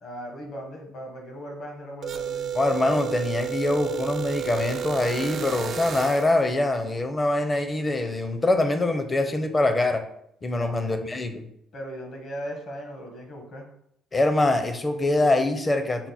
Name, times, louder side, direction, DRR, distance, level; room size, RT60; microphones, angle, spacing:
voice 1, 0.0-2.5 10.4-10.9 11.7-13.7, equal, 55° left, 2 dB, 1.3 m, -38 dB
sound 1, 2.0-6.4, right 9 dB, 55° right, 0.3 m, -31 dB
voice 2, 2.5-10.0 10.4-11.4 14.1-16.1, left 2 dB, 25° left, 7 dB, 0.6 m, -24 dB
5.8 x 2.1 x 4.1 m, 0.73 s
cardioid pair, 95°, 0 cm